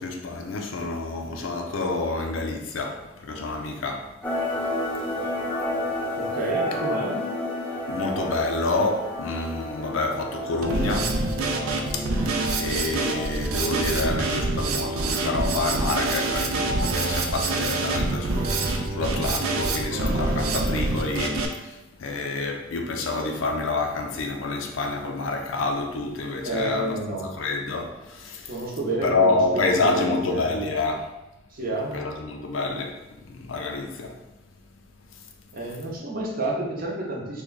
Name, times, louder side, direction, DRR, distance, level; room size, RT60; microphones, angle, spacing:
voice 1, 0.0-4.1 5.1-5.2 7.9-11.2 11.9-26.9 27.2-28.5 29.0-31.1 31.9-34.2, left 3 dB, 70° left, 0.5 m, -28 dB
sound 1, 4.2-13.8, left 1 dB, 5° left, 0.4 m, -31 dB
voice 2, 6.2-7.2 26.4-27.3 28.5-30.7 31.5-32.0 35.5-37.4, right 1 dB, 45° right, 0.7 m, -29 dB
Drum kit, 10.6-21.5, right 2 dB, 85° right, 0.5 m, -26 dB
3.2 x 2.2 x 3.9 m
head